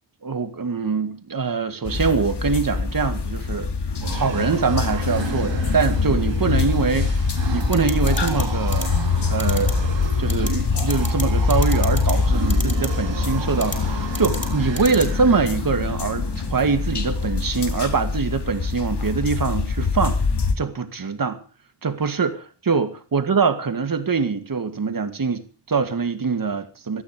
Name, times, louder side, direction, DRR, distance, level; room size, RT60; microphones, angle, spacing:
voice 1, 0.2-3.7 4.1-7.2 7.5-8.9 9.3-9.7 10.2-20.2 20.6-21.4 21.8-27.0, right 5 dB, 50° right, 2.2 m, -23 dB
sound 1, 1.9-20.5, left 4 dB, 65° left, 2.8 m, -24 dB
sound 2, 4.0-17.2, right 6 dB, 80° right, 3.1 m, -34 dB
sound 3, 7.7-8.4 8.7-8.8 9.4-9.7 10.3-10.5 10.8-11.2 11.5-12.1 12.5-12.9 13.6-13.8 14.1-14.5 14.8-15.0, left 1 dB, 15° left, 5.6 m, -30 dB
18.5 x 13.5 x 5.2 m
wide cardioid pair, 115°, 43 cm